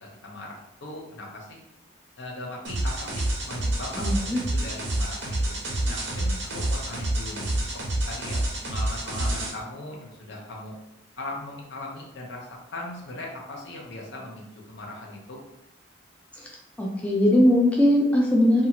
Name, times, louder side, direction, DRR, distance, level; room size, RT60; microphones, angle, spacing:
voice 1, 0.0-1.6 2.2-5.6 5.9-7.7 8.1-10.7 11.2-15.4, left 2 dB, 70° left, -1 dB, 0.7 m, -39 dB
sound 1, 2.6-9.5, right 1 dB, 85° right, 0.8 m, -28 dB
voice 2, 4.0-4.4 16.8-18.7, left 1 dB, 5° left, -2 dB, 0.3 m, -20 dB
2.8 x 2.3 x 2.8 m, 0.89 s
head